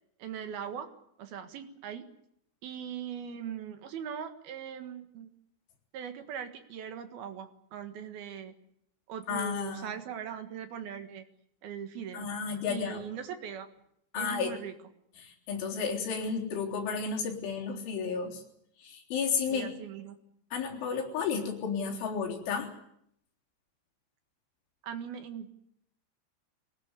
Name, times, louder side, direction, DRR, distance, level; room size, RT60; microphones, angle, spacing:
voice 1, 0.2-0.9 1.2-2.0 2.6-5.3 5.9-8.5 9.1-11.3 11.6-12.3 12.7-13.7 14.2-14.7 19.5-20.2 24.8-25.6, right 8 dB, 60° right, 8 dB, 3.1 m, -40 dB
voice 2, 9.3-9.9 12.1-13.0 14.1-14.5 15.2-18.4 18.8-19.7 20.5-22.7, left 6 dB, 75° left, 0 dB, 6.2 m, -32 dB
23.0 x 19.5 x 9.8 m, 0.74 s
omnidirectional pair, 5.6 m